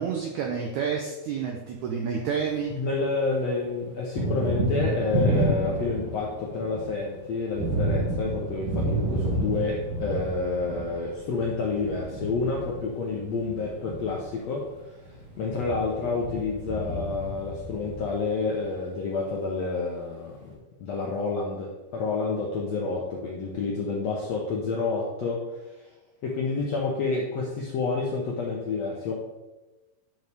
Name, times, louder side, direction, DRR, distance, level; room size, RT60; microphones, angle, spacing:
voice 1, 0.0-2.7, right 6 dB, 85° right, 1 dB, 1.7 m, -29 dB
Thunder, 1.9-3.1 3.4-18.6, right 1 dB, 60° right, 3.2 m, -30 dB
voice 2, 2.7-15.0 15.4-20.5 20.8-25.8 26.2-29.1, left 4 dB, 75° left, -3 dB, 1.6 m, -29 dB
11.0 x 5.6 x 3.5 m, 1.1 s
omnidirectional pair, 4.4 m